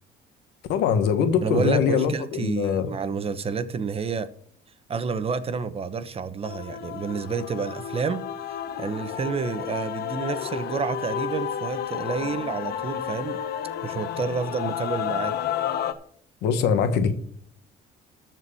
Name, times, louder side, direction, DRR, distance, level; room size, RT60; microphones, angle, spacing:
voice 1, 0.7-2.9 16.4-17.1, left 7 dB, 85° left, 1.4 m, -22 dB
voice 2, 1.4-4.3 4.9-13.4 13.8-15.3, right 5 dB, 35° right, 1.0 m, -29 dB
Male singing / Female singing / Musical instrument, 6.4-15.9, left 9 dB, 70° left, 0.9 m, -31 dB
13.0 x 4.6 x 7.1 m
cardioid pair, 110°, 17 cm